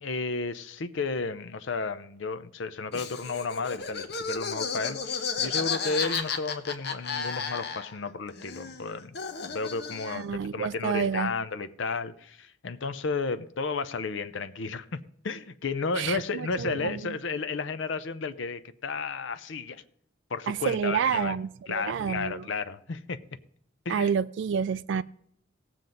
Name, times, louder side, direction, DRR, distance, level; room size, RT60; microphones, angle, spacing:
voice 1, 0.0-9.2 9.5-19.8 20.3-21.4 21.7-23.2 23.9-24.2, left 4 dB, 75° left, 0.6 m, -33 dB
Laughter, 2.9-8.1 8.4-10.3, left 6 dB, 55° left, 1.0 m, -33 dB
voice 2, 10.1-11.3 16.0-17.0 20.5-22.4 23.9-25.0, right 7 dB, 65° right, 0.3 m, -29 dB
17.5 x 7.6 x 3.9 m
head